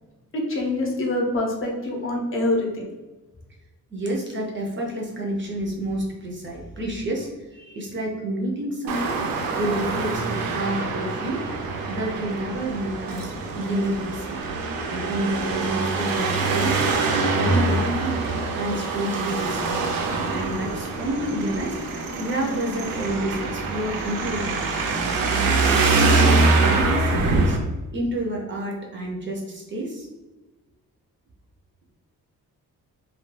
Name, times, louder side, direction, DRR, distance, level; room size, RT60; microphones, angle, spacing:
voice 1, 0.3-2.9, left 1 dB, 40° left, -1 dB, 0.6 m, -25 dB
voice 2, 3.9-9.2 9.6-11.4 11.9-14.4 14.9-16.8 17.1-18.2 18.5-19.9 20.3-21.8 22.2-24.9 25.5-27.6 27.9-30.1, right 1 dB, 35° right, -1 dB, 0.5 m, -29 dB
Traffic noise roadway noise, 8.9-27.6, right 3 dB, 85° right, 0.5 m, -24 dB
2.3 x 2.1 x 3.1 m, 1.1 s
wide cardioid pair, 145°, 34 cm